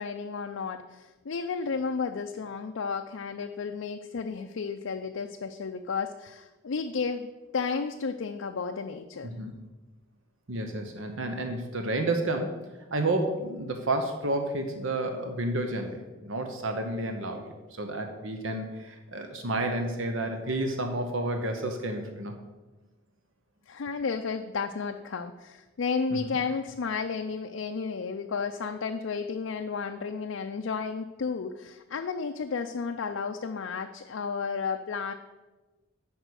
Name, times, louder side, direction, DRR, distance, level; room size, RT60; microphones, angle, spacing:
voice 1, 0.0-9.3 23.7-35.1, left 5 dB, 70° left, 5 dB, 0.5 m, -32 dB
voice 2, 9.2-9.6 10.5-12.5 12.9-22.3 26.1-26.3, right 2 dB, 70° right, 5 dB, 0.9 m, -31 dB
8.9 x 5.5 x 6.4 m, 1.2 s
head